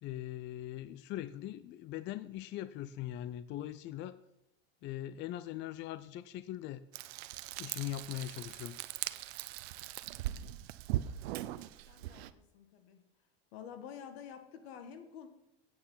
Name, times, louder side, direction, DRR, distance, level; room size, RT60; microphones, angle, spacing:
voice 1, 0.0-4.2 4.8-6.8 7.6-8.8, left 13 dB, 35° left, 15 dB, 0.5 m, -41 dB
Frying (food), 6.9-12.3, right 14 dB, 75° right, 0.7 m, -40 dB
voice 2, 11.2-13.0 13.5-15.3, left 8 dB, 75° left, 8 dB, 1.8 m, -50 dB
9.1 x 8.7 x 5.7 m, 0.86 s
supercardioid pair, 120°, 31 cm